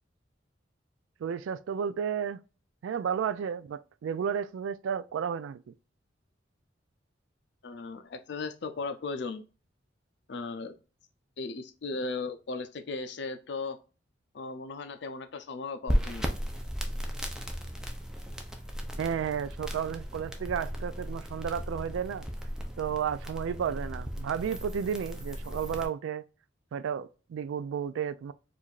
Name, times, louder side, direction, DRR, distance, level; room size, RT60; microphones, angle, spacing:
voice 1, 1.2-2.4 2.8-5.6 19.0-22.3 22.8-26.2 26.7-28.3, right 7 dB, 85° right, 0.3 m, -32 dB
voice 2, 7.6-9.4 10.3-10.8 11.4-13.8 14.3-16.3, left 3 dB, 65° left, 0.5 m, -37 dB
sound 1, 15.9-25.8, equal, 5° right, 0.5 m, -35 dB
4.6 x 2.5 x 2.4 m
head